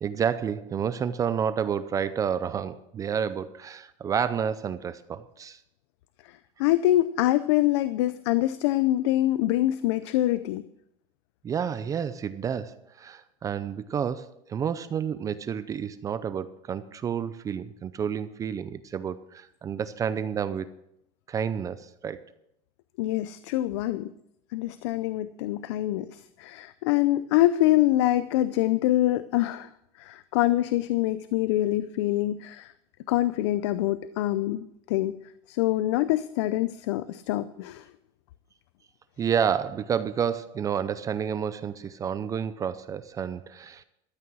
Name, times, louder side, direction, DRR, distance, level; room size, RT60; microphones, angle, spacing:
voice 1, 0.0-5.6 11.4-20.7 21.3-22.2 39.2-43.8, right 7 dB, 25° right, 14 dB, 0.5 m, -30 dB
voice 2, 6.6-10.6 23.0-24.1 24.5-29.7 30.0-32.7 33.1-35.2 35.5-37.9, left 15 dB, 85° left, 14 dB, 0.5 m, -25 dB
13.0 x 8.5 x 6.3 m, 0.79 s
cardioid pair, 150°, 14 cm